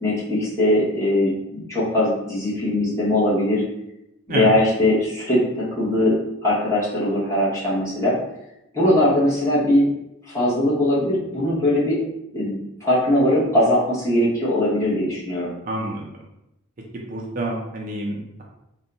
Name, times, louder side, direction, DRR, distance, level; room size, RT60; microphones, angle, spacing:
voice 1, 0.0-3.6 4.3-6.2 6.4-8.1 8.7-9.8 10.3-12.0 12.3-15.5, left 1 dB, 15° left, -9 dB, 1.2 m, -20 dB
voice 2, 15.6-16.1 16.9-18.4, right 1 dB, 45° right, -1 dB, 0.5 m, -28 dB
2.7 x 2.2 x 3.8 m, 0.85 s
head